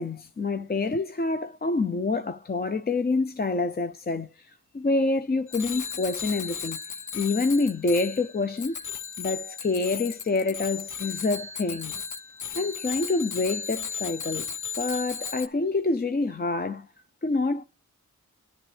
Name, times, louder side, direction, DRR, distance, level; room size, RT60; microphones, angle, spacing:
voice 1, 0.0-4.5 4.7-6.8 7.1-8.7 9.2-12.0 12.6-14.5 14.8-16.9 17.2-17.6, left 3 dB, 30° left, 0.5 m, -27 dB
Bicycle bell, 5.5-15.5, left 6 dB, 70° left, 0.8 m, -35 dB
11.0 x 10.0 x 3.3 m
wide cardioid pair, 90°, 31 cm